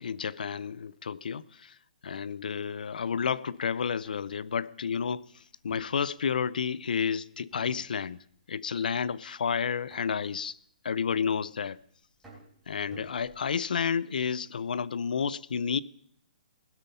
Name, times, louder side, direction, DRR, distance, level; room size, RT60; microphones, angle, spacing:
voice 1, 0.0-1.8 2.0-10.6 10.8-11.8 12.7-15.8, left 6 dB, 75° left, 0.5 m, -31 dB
sound 1, 4.0-4.4 5.7-6.7 7.5-8.3 8.6-9.0 9.9-10.4 11.1-11.8 12.2-13.7, right 2 dB, 5° right, 3.5 m, -53 dB
18.5 x 8.2 x 5.5 m
hypercardioid pair, 175°, 5 cm